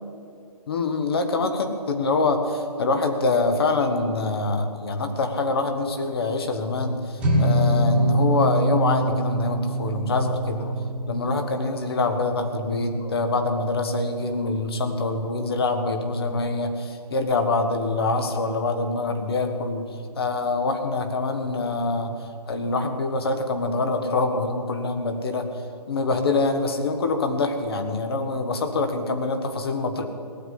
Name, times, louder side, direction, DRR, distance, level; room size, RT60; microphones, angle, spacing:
voice 1, 0.7-10.8 11.1-19.9 20.2-25.5 25.9-30.1, left 3 dB, 35° left, 6 dB, 1.5 m, -25 dB
sound 1, 7.2-13.6, right 1 dB, 5° right, 1.7 m, -25 dB
17.5 x 7.6 x 9.9 m, 2.4 s
figure-of-eight pair, 155°, 20 cm